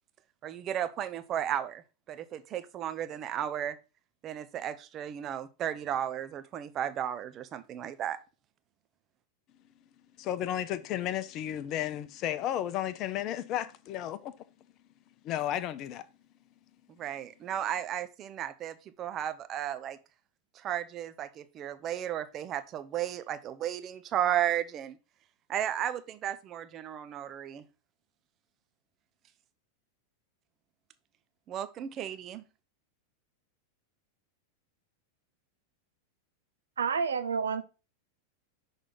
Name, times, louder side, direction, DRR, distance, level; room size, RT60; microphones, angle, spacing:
voice 1, 0.4-1.8 2.1-3.8 4.2-8.2 17.0-20.0 20.6-25.0 25.5-27.6 31.5-32.4, right 10 dB, 30° right, 0.5 m, -34 dB
voice 2, 10.2-14.3 15.2-16.0, left 11 dB, 35° left, 0.5 m, -33 dB
voice 3, 36.8-37.6, right 6 dB, 70° right, 0.6 m, -29 dB
6.1 x 3.3 x 5.6 m
figure-of-eight pair, 90°, 0 cm